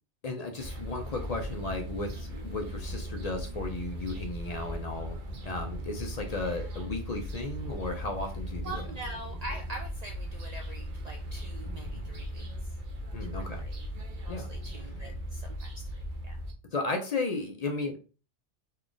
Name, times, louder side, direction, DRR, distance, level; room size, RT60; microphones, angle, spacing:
voice 1, 0.2-5.2 5.4-8.8 13.1-13.7 14.3-14.5 16.7-18.0, left 3 dB, 60° left, 4 dB, 0.4 m, -34 dB
sound 1, 0.6-16.5, equal, 50° right, 0.7 m, -38 dB
voice 2, 8.6-12.5 13.2-13.3 13.6-13.8 14.3-15.8 16.2-16.4, right 2 dB, 85° right, 1 dB, 0.3 m, -43 dB
3.2 x 2.4 x 3.8 m, 0.36 s
omnidirectional pair, 1.3 m